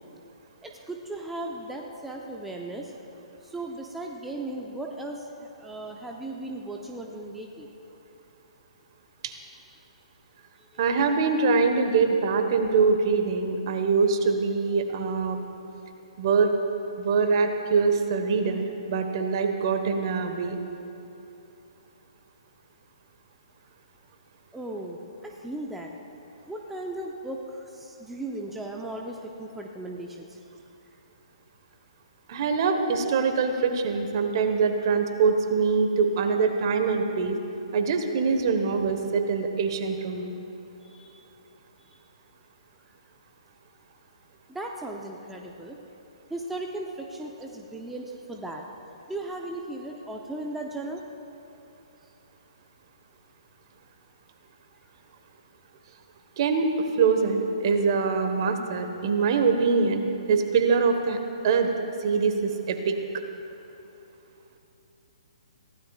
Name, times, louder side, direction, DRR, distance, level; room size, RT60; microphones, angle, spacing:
voice 1, 0.6-2.9 3.4-7.7 10.6-10.8 24.5-25.9 26.5-30.4 40.8-41.1 41.9-42.0 44.5-45.8 46.3-48.6 49.1-51.0, right 2 dB, 5° right, 0 dB, 0.8 m, -37 dB
voice 2, 10.8-15.4 16.2-16.5 17.0-20.6 32.3-37.4 37.7-40.4 56.4-61.7 62.0-63.0, right 5 dB, 45° right, 6 dB, 1.3 m, -24 dB
23.5 x 16.0 x 2.4 m, 2.9 s
figure-of-eight pair, 130°, 3 cm